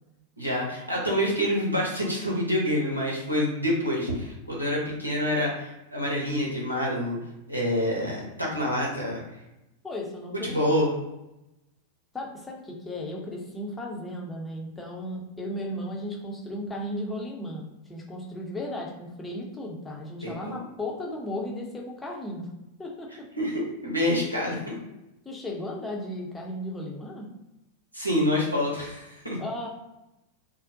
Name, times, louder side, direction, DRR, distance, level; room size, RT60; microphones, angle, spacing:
voice 1, 0.4-7.2 7.5-9.2 10.4-10.9 20.2-20.6 23.4-24.7 27.9-29.4, left 1 dB, 85° right, -3 dB, 0.7 m, -27 dB
voice 2, 9.8-10.7 12.1-22.5 22.8-23.3 25.2-27.3 29.4-29.7, left 1 dB, 10° left, -1 dB, 0.6 m, -35 dB
2.5 x 2.1 x 2.6 m, 0.92 s
figure-of-eight pair, 90°, 0 cm